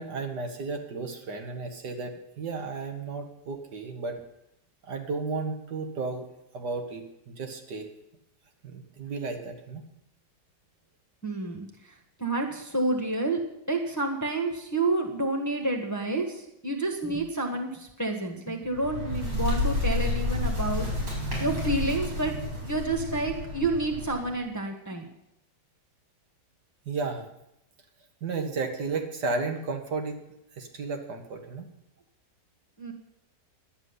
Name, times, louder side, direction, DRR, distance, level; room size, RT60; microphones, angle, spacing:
voice 1, 0.0-4.2 4.8-6.3 6.5-7.9 8.6-9.9 26.9-27.3 28.2-30.2 30.6-31.7, right 4 dB, 70° right, 4 dB, 1.9 m, -33 dB
voice 2, 11.2-11.7 12.2-13.4 13.7-20.9 21.4-22.3 22.6-25.1 32.8-32.9, right 2 dB, 10° left, 1 dB, 1.2 m, -29 dB
Bird, 18.6-24.4, left 2 dB, 90° right, 6.1 m, -30 dB
11.5 x 7.3 x 9.7 m, 0.83 s
omnidirectional pair, 1.9 m